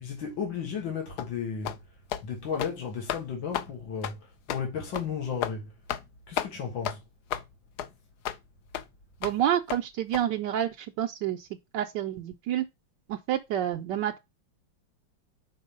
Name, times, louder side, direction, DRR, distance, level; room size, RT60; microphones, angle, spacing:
voice 1, 0.0-1.8 2.2-5.7 6.3-7.0, left 6 dB, 90° left, 2.3 m, -34 dB
sound 1, 1.2-1.3 1.6-1.8 2.1-2.2 2.5-2.8 3.1-3.2 3.5-3.7 4.0-4.2 4.5-4.6 4.9-5.1 5.4-5.6 5.9-6.1 6.4-6.5 6.8-7.0 7.3-7.5 7.8-7.9 8.2-8.4 8.7-8.8 9.2-9.4 9.7-9.8 10.1-10.2, left 10 dB, 70° left, 1.0 m, -32 dB
voice 2, 9.2-11.5 11.7-12.6 13.1-14.2, right 11 dB, 75° right, 1.2 m, -28 dB
5.5 x 4.2 x 5.1 m
omnidirectional pair, 2.0 m